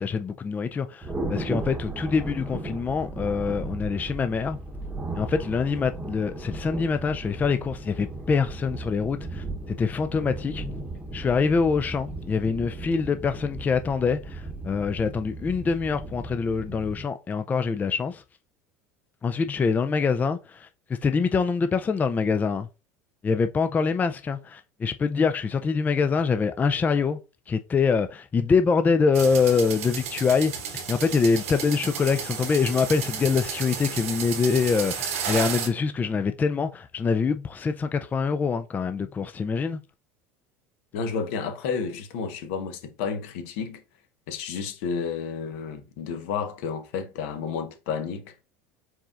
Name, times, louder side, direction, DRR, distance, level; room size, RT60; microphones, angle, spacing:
voice 1, 0.0-4.6 5.1-10.6 11.1-18.2 19.2-22.7 23.2-27.2 27.5-39.8, left 5 dB, 20° left, 0.4 m, -25 dB
Thunder, 1.0-17.0, right 2 dB, 15° right, 0.9 m, -36 dB
sound 1, 29.1-35.7, right 7 dB, 80° right, 1.2 m, -32 dB
voice 2, 40.9-43.8 44.3-48.3, left 6 dB, 75° left, 1.0 m, -31 dB
4.7 x 3.9 x 2.4 m
hypercardioid pair, 85°, 7 cm